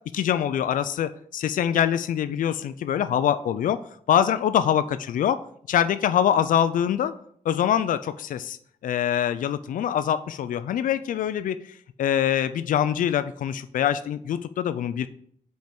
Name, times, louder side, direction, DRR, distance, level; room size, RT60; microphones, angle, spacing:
voice 1, 0.1-3.8 4.1-5.4 5.7-7.1 7.5-8.6 8.8-15.1, left 9 dB, 90° left, 12 dB, 0.4 m, -24 dB
5.3 x 4.5 x 5.1 m, 0.62 s
wide cardioid pair, 145°, 13 cm